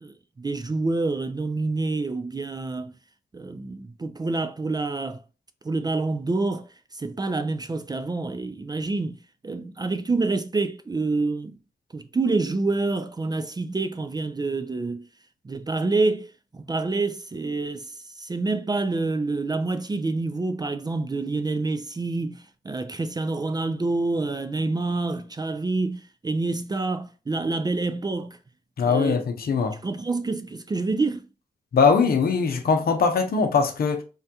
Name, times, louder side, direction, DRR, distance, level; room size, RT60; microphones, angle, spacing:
voice 1, 0.0-3.0 3.3-5.2 5.6-6.7 6.9-9.2 9.4-11.5 11.9-15.1 15.4-28.4 28.8-29.2 29.7-31.2, right 3 dB, 25° right, 0.4 m, -27 dB
voice 2, 28.8-29.8 31.7-34.0, left 5 dB, 65° left, 0.6 m, -21 dB
3.5 x 2.2 x 2.7 m
supercardioid pair, 40°, 17 cm